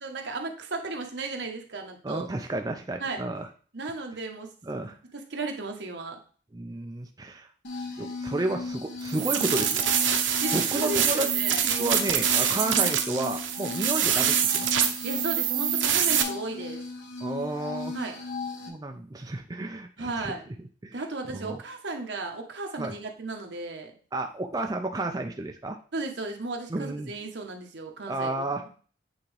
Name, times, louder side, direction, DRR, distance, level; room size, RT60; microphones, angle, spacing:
voice 1, 0.0-2.3 3.0-3.2 3.7-6.2 10.1-11.6 12.7-12.9 14.8-16.8 17.9-18.2 20.0-20.4 20.9-23.9 25.9-28.7, right 3 dB, 70° right, 3 dB, 1.1 m, -35 dB
voice 2, 2.0-3.5 4.7-5.0 6.5-7.5 8.0-9.8 10.5-11.3 11.6-14.7 17.2-18.0 18.7-20.3 20.8-21.0 21.3-21.6 22.8-22.9 24.1-25.8 26.7-27.1 28.1-28.6, right 2 dB, 20° right, 4 dB, 0.4 m, -31 dB
sound 1, 7.6-18.7, left 3 dB, 75° left, 1.2 m, -36 dB
sound 2, 9.1-16.2, right 9 dB, 85° right, 0.8 m, -25 dB
8.3 x 3.6 x 3.3 m, 0.41 s
head